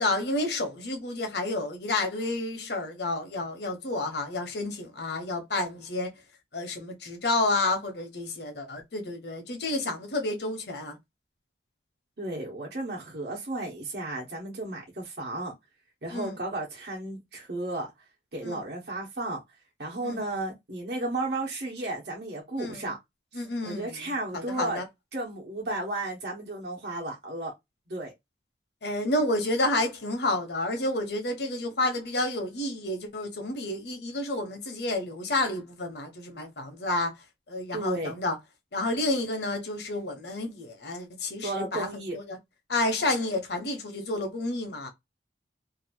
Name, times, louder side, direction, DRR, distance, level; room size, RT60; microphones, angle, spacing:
voice 1, 0.0-6.1 6.5-11.0 16.1-16.4 18.4-18.6 20.0-20.2 22.6-22.9 23.3-24.8 28.8-37.1 37.5-38.4 38.7-41.9 42.1-42.4 42.7-44.9, left 2 dB, 65° left, 1.0 m, -30 dB
voice 2, 12.2-15.5 16.0-17.9 18.3-19.4 19.8-23.0 23.3-24.8 25.1-27.5 27.9-28.1 37.7-38.1 41.4-42.2, right 2 dB, 65° right, 1.1 m, -33 dB
2.8 x 2.5 x 2.8 m
head